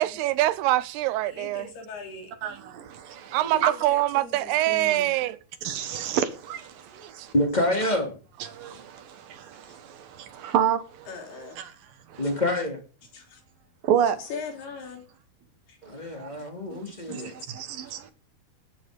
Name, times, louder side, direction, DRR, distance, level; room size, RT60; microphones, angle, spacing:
voice 1, 0.0-1.7 3.3-5.4 5.9-6.0 7.0-7.3, right 16 dB, 90° right, 2.9 m, -24 dB
voice 2, 1.3-2.2 3.4-5.1 11.1-11.6 13.1-13.4 14.2-15.0 15.7-15.8 17.1-17.3, left 4 dB, 80° left, 5.6 m, -40 dB
voice 3, 3.0-3.7 5.6-7.3 8.4-11.1 11.4-11.7 12.1-12.2 13.8-14.2 15.9-16.4 16.7-16.8 17.1-18.1, right 9 dB, 65° right, 2.8 m, -29 dB
voice 4, 7.3-8.2 12.2-12.8 15.8-17.3, left 1 dB, 10° left, 2.9 m, -26 dB
19.5 x 10.5 x 5.4 m
omnidirectional pair, 4.5 m